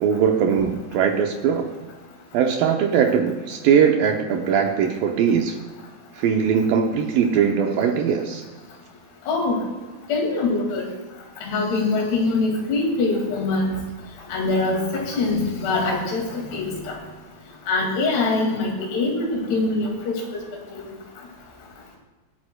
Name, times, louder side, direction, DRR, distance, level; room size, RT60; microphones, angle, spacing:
voice 1, 0.0-1.7 2.3-5.6 6.2-8.4, right 7 dB, 75° right, 4 dB, 2.2 m, -20 dB
voice 2, 10.1-10.9 11.4-13.8 14.3-16.7 17.7-20.1 20.7-20.9, left 3 dB, 80° left, 0 dB, 4.2 m, -23 dB
23.0 x 8.6 x 2.2 m, 1.3 s
omnidirectional pair, 4.6 m